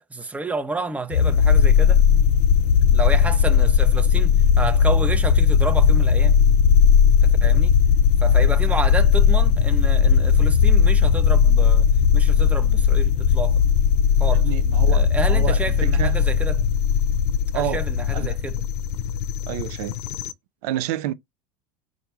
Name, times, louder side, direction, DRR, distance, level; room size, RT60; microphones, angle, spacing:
voice 1, 0.0-2.0 2.9-6.4 7.2-7.7 8.2-11.9 12.1-13.6 14.2-14.5 14.9-16.6 17.5-18.6, right 3 dB, 5° right, 0.6 m, -30 dB
sound 1, 1.1-20.3, left 7 dB, 70° left, 0.5 m, -17 dB
voice 2, 14.3-16.2 17.5-17.8 18.1-18.4 19.5-20.0 20.6-21.1, right 13 dB, 75° right, 0.5 m, -29 dB
4.5 x 2.6 x 4.5 m
supercardioid pair, 105°, 20 cm